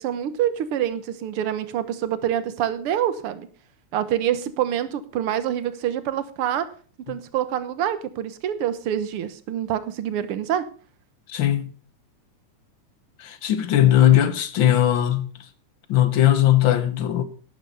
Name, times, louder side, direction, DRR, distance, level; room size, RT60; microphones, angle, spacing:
voice 1, 0.0-3.5 3.9-6.7 7.1-10.7, right 10 dB, 60° right, 1.6 m, -26 dB
voice 2, 11.3-11.7 13.2-15.3 15.9-17.2, left 12 dB, 65° left, 1.2 m, -19 dB
12.0 x 10.5 x 5.4 m
omnidirectional pair, 3.5 m